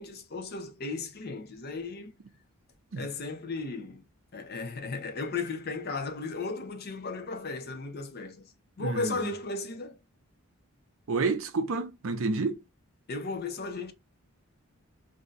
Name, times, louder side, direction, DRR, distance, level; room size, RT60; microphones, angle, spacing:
voice 1, 0.0-2.1 2.9-4.0 4.3-8.4 8.8-10.0 13.1-13.9, left 3 dB, 45° left, 0.5 m, -35 dB
voice 2, 8.8-9.3 11.1-12.6, right 3 dB, 65° right, 0.5 m, -29 dB
2.6 x 2.1 x 3.8 m
head